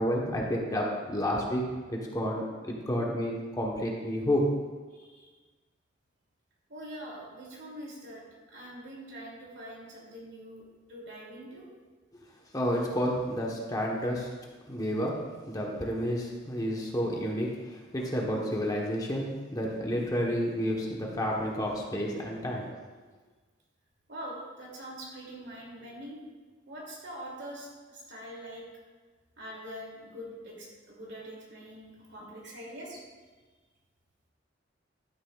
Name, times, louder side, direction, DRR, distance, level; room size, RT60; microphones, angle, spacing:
voice 1, 0.0-1.6 1.9-4.5 12.5-14.3 14.7-15.2 15.5-22.7, equal, 20° left, -2 dB, 1.1 m, -30 dB
voice 2, 4.9-5.3 6.7-10.6 10.9-11.6 24.1-26.2 26.7-28.6 29.4-33.0, equal, 65° right, -3 dB, 2.7 m, -44 dB
11.5 x 9.7 x 2.4 m, 1.4 s
head